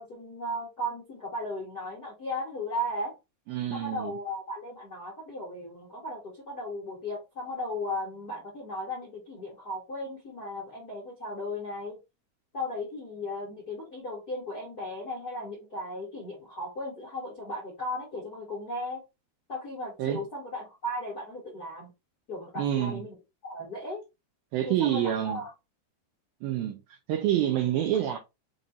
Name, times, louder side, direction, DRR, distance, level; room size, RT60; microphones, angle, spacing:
voice 1, 0.0-3.2 3.7-12.0 12.5-19.0 19.5-21.9 22.3-23.1 23.4-24.0 24.6-25.5, left 1 dB, 50° left, 1.1 m, -36 dB
voice 2, 3.5-4.1 20.0-20.2 22.6-23.0 24.5-25.4 26.4-28.2, right 11 dB, 80° right, 2.1 m, -27 dB
6.5 x 2.5 x 2.8 m
omnidirectional pair, 4.9 m